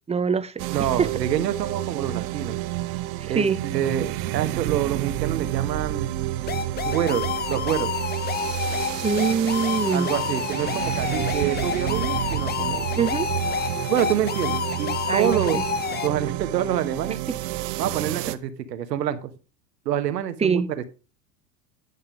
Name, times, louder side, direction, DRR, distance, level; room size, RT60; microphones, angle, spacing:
voice 1, 0.1-0.7 1.0-1.1 3.3-3.6 9.0-10.1 13.0-13.3 15.1-15.6 20.4-20.7, right 6 dB, 15° right, 0.7 m, -23 dB
sound 1, 0.6-18.3, right 14 dB, 60° right, 0.8 m, -30 dB
voice 2, 0.7-2.6 3.3-6.1 6.8-7.9 9.9-12.9 13.9-15.6 16.0-17.2 17.8-19.3 19.8-20.6, right 10 dB, 85° right, 1.2 m, -27 dB
sound 2, 6.5-16.1, left 7 dB, 20° left, 0.7 m, -29 dB
9.6 x 5.5 x 5.1 m
hypercardioid pair, 90°, 48 cm